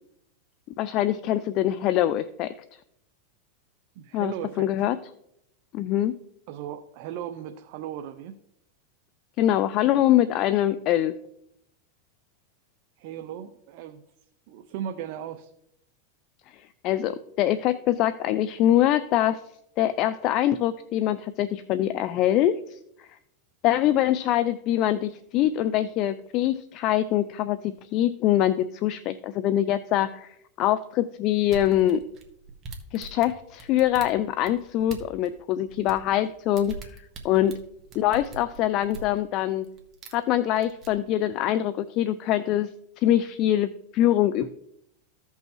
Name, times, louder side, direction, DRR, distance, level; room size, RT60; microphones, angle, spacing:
voice 1, 0.8-2.5 4.1-5.0 5.7-6.2 9.4-11.2 16.5-19.4 19.8-23.1 23.6-32.0 32.9-37.6 38.0-39.7 40.1-42.7 43.0-44.5, left 12 dB, 45° left, 14 dB, 0.4 m, -24 dB
voice 2, 4.0-4.7 6.5-8.4 13.0-14.0 14.5-15.5, right 10 dB, 55° right, 7 dB, 0.5 m, -36 dB
sound 1, 31.4-35.3 35.7-39.2 39.6-40.2 40.6-40.9, right 3 dB, 35° right, 1.5 m, -42 dB
15.0 x 5.5 x 3.0 m, 0.76 s
hypercardioid pair, 125°, 0 cm